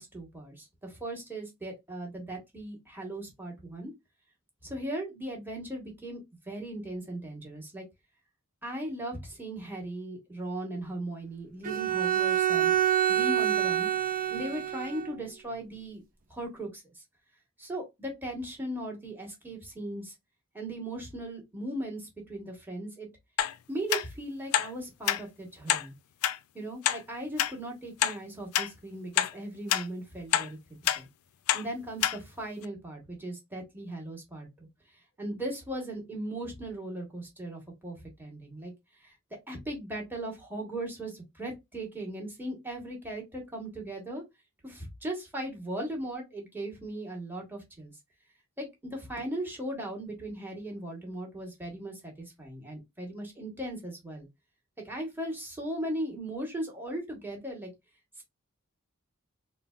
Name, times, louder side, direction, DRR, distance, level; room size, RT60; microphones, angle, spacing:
voice 1, 0.0-3.9 4.6-6.2 6.5-7.8 8.6-12.7 13.1-13.9 14.3-16.0 16.3-17.0 17.6-20.1 20.5-23.1 23.7-25.9 26.5-30.6 31.0-31.1 31.5-34.7 35.2-38.7 39.0-39.1 39.5-44.2 44.6-47.9 48.6-54.3 54.8-57.7 58.2-58.3, right 1 dB, 10° right, 1.1 m, -38 dB
Bowed string instrument, 11.6-15.1, right 10 dB, 40° right, 0.5 m, -27 dB
sound 1, 23.4-23.5 23.9-24.0 24.5-24.7 25.1-25.2 25.7-25.9 26.2-26.4 26.8-27.0 27.4-27.5 28.0-28.2 28.5-28.7 29.2-29.3 29.7-29.9 30.3-30.5 30.9-31.0 31.5-31.6 32.0-32.2 32.6-32.7, left 11 dB, 75° left, 0.3 m, -26 dB
3.7 x 2.1 x 2.3 m
head